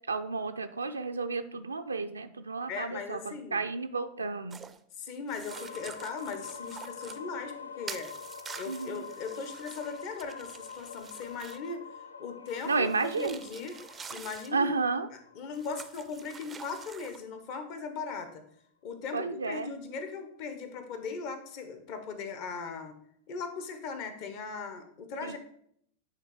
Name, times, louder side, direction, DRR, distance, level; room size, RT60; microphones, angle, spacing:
voice 1, 0.1-4.6 8.7-9.0 12.7-13.4 14.5-15.1 19.1-19.7 25.2-25.4, right 4 dB, 75° right, 7 dB, 0.4 m, -32 dB
voice 2, 2.7-3.6 5.0-8.1 8.6-11.8 12.2-13.8 14.1-14.7 15.3-18.4 18.8-23.0 23.3-25.4, left 5 dB, 45° left, 8 dB, 1.0 m, -38 dB
sound 1, 4.5-4.8 5.3-7.2 7.9-11.7 12.5-14.5 15.5-17.2, right 6 dB, 15° right, 0.4 m, -47 dB
sound 2, 5.5-17.3, left 6 dB, 75° left, 0.3 m, -46 dB
9.2 x 3.2 x 4.7 m, 0.66 s
figure-of-eight pair, 90°, 0 cm